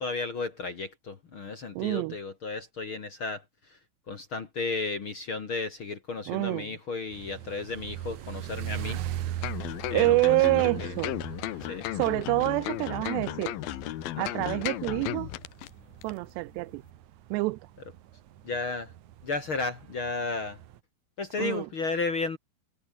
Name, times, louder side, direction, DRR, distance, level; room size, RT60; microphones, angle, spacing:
voice 1, 0.0-3.4 4.1-9.0 9.9-10.2 10.8-10.9 11.6-11.9 14.2-14.5 18.4-18.9 19.2-20.6 21.2-22.4, left 3 dB, 40° left, 2.0 m, -33 dB
voice 2, 1.8-2.2 6.3-6.8 9.9-11.2 12.0-13.6 14.2-15.3 16.0-16.8 17.3-17.6 21.4-21.7, right 22 dB, 85° right, 2.8 m, -27 dB
sound 1, 7.1-20.8, right 12 dB, 65° right, 2.1 m, -40 dB
sound 2, 9.4-15.7 16.0-16.1, left 15 dB, 70° left, 2.6 m, -35 dB
omnidirectional pair, 4.8 m